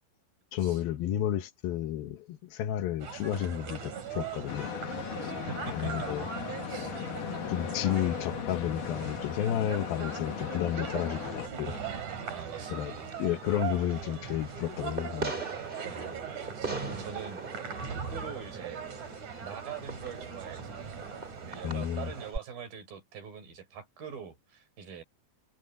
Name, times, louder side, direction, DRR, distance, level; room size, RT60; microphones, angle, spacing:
voice 1, 0.5-4.7 5.2-5.3 5.7-6.3 7.5-11.8 12.7-12.9 13.2-15.4 21.6-22.1, left 11 dB, 80° left, 3.0 m, -32 dB
Train Station ambience, 3.0-22.3, right 7 dB, 55° right, 4.6 m, -40 dB
sound 1, 4.5-11.5, left 9 dB, 65° left, 3.1 m, -38 dB
voice 2, 5.2-5.9 6.7-7.0 12.2-13.2 15.8-17.5 17.9-18.9 19.4-20.8 21.3-25.0, right 7 dB, 75° right, 5.8 m, -44 dB
Fireworks, 12.4-22.4, right 3 dB, 15° right, 2.2 m, -42 dB
omnidirectional pair, 4.2 m